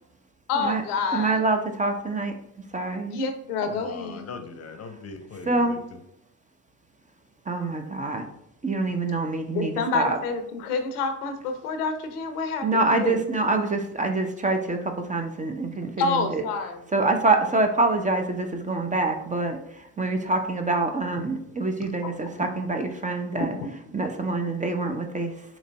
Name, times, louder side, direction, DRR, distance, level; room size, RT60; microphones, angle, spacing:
voice 1, 0.5-1.4 2.9-4.3 9.5-13.2 16.0-16.8 22.4-22.5 23.4-23.7, left 4 dB, 85° left, 7 dB, 0.6 m, -28 dB
voice 2, 1.1-2.3 2.7-3.1 5.5-5.8 7.5-8.3 8.6-10.2 12.6-16.4 16.9-23.5 23.9-25.6, right 3 dB, 20° right, 5 dB, 0.5 m, -26 dB
voice 3, 3.6-6.0, left 5 dB, 35° left, 7 dB, 0.7 m, -39 dB
3.9 x 3.0 x 3.4 m, 0.76 s
hypercardioid pair, 55°, 44 cm